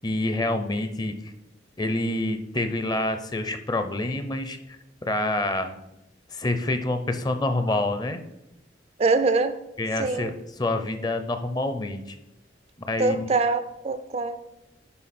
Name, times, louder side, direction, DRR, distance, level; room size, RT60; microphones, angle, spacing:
voice 1, 0.0-1.3 1.8-5.8 6.3-8.2 9.8-12.2 12.9-13.3, left 2 dB, 20° left, 0.5 m, -27 dB
voice 2, 9.0-9.6 10.0-10.3 13.0-14.4, right 3 dB, 35° right, 0.3 m, -23 dB
11.5 x 4.5 x 4.2 m
head